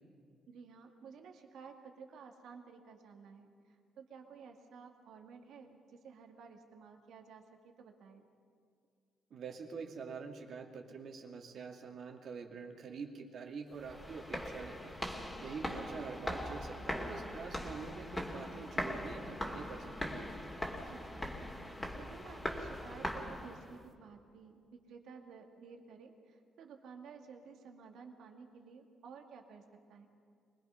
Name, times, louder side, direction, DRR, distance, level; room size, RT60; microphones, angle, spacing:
voice 1, 0.5-8.3 20.8-29.6 29.9-30.1, right 5 dB, 75° right, 4 dB, 2.1 m, -54 dB
voice 2, 9.3-14.9 15.4-20.3, right 5 dB, 60° right, 3 dB, 2.4 m, -46 dB
sound 1, 13.8-23.8, left 1 dB, 15° left, 2.6 m, -41 dB
24.5 x 20.0 x 5.8 m, 2.2 s
cardioid pair, 90°, 0 cm